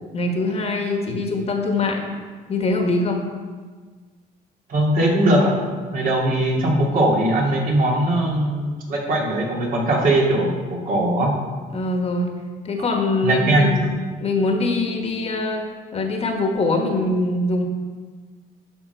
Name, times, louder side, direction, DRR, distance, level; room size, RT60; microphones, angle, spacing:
voice 1, 0.1-2.0 2.5-3.2 11.7-12.3 12.6-13.9 14.2-15.6 15.9-17.6, left 2 dB, 35° left, 3 dB, 1.4 m, -23 dB
voice 2, 4.7-11.3 12.8-12.9 13.2-13.7, right 1 dB, 55° right, -2 dB, 2.3 m, -20 dB
12.0 x 5.4 x 4.6 m, 1.5 s
cardioid pair, 110°, 17 cm